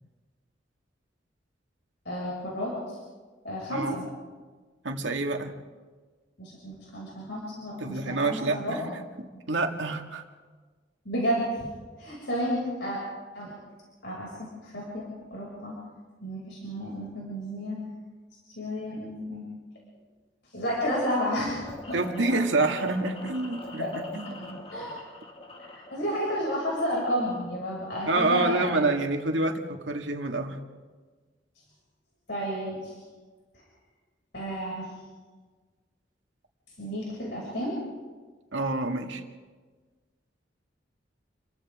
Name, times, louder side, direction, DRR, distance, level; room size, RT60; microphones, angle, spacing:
voice 1, 2.0-3.0 3.4-4.0 6.4-8.8 11.0-11.7 12.0-13.0 13.3-13.5 14.0-14.3 14.6-15.8 16.2-17.8 18.6-19.4 20.5-22.0 23.8-23.9 24.7-25.0 25.6-28.8 32.3-32.9 34.3-34.9 36.8-37.7, equal, 65° left, -4 dB, 6.5 m, -31 dB
voice 2, 4.8-5.5 7.8-8.9 9.2-10.2 21.9-24.5 28.1-30.6 38.5-39.2, right 2 dB, 75° right, 3 dB, 2.1 m, -28 dB
sound 1, 21.6-27.6, left 2 dB, 30° left, 2.1 m, -43 dB
30.0 x 23.5 x 3.7 m, 1.4 s
head